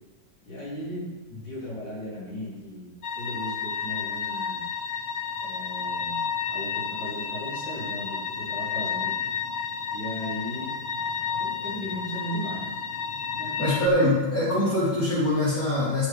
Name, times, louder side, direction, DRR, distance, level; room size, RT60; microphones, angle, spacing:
voice 1, 0.5-4.7 5.4-9.2 9.9-10.7 11.4-12.8 13.4-13.8, equal, 70° left, -7 dB, 4.2 m, -37 dB
sound 1, 3.0-13.9, left 6 dB, 90° left, 1.7 m, -31 dB
voice 2, 13.6-16.1, left 1 dB, 45° left, -12 dB, 4.1 m, -23 dB
11.5 x 6.3 x 5.8 m, 1.1 s
omnidirectional pair, 2.2 m